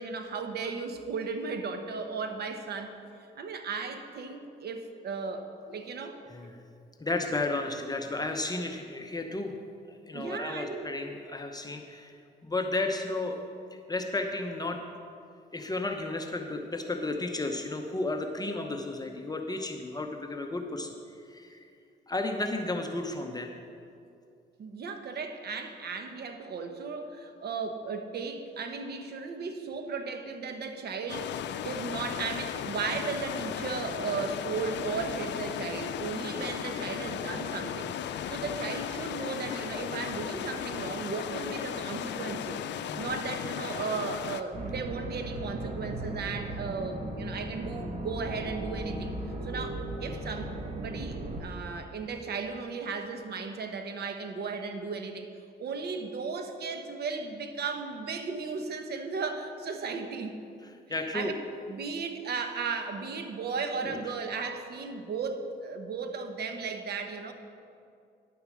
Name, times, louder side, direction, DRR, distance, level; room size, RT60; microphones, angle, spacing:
voice 1, 0.0-2.9 3.4-6.2 10.1-10.9 24.6-49.1 49.4-55.3 55.6-60.4 61.1-67.3, right 4 dB, 60° right, 6 dB, 1.0 m, -36 dB
voice 2, 7.0-9.5 9.9-12.1 12.4-13.4 13.9-14.8 15.5-20.9 21.3-21.6 22.1-23.5 42.9-43.1 60.9-61.3 63.8-63.9, left 2 dB, 20° left, 3 dB, 0.8 m, -33 dB
sound 1, 31.1-44.4, left 9 dB, 75° left, 0.5 m, -36 dB
sound 2, 44.5-51.4, right 1 dB, 40° right, 1.4 m, -36 dB
10.5 x 6.7 x 6.3 m, 2.5 s
cardioid pair, 90°, 18 cm